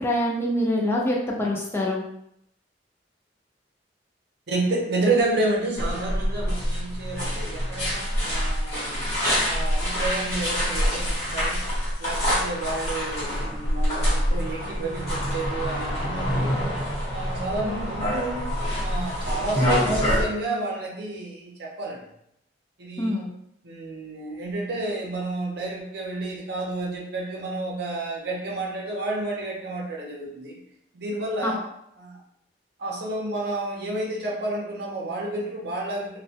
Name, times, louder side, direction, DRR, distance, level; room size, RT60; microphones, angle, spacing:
voice 1, 0.0-2.0 17.6-17.7 23.0-23.3 31.4-31.6, left 1 dB, 15° left, -3 dB, 0.5 m, -25 dB
voice 2, 4.5-9.0 9.3-11.6 12.0-16.6 17.1-22.0 22.8-23.2 23.6-30.6 30.9-31.6 32.0-32.2 32.8-36.2, right 2 dB, 65° right, -2 dB, 0.6 m, -30 dB
sound 1, 5.8-20.2, equal, 40° left, 1.1 m, -26 dB
2.2 x 2.1 x 2.7 m, 0.75 s
head